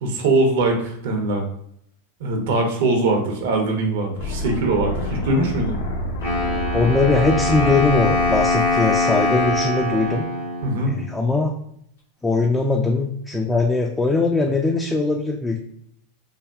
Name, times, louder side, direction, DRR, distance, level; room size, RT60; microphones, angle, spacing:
voice 1, 0.0-1.4 2.2-5.8 10.6-11.0, right 2 dB, 65° right, 2 dB, 0.7 m, -21 dB
sound 1, 4.2-10.2, left 1 dB, 60° left, 0.6 m, -29 dB
Wind instrument woodwind instrument, 6.2-11.2, left 2 dB, 85° left, 1.3 m, -23 dB
voice 2, 6.7-10.3 10.8-11.5 12.2-15.6, left 3 dB, 10° left, 1 dB, 0.3 m, -21 dB
3.4 x 2.2 x 2.4 m, 0.71 s
hypercardioid pair, 95°, 0 cm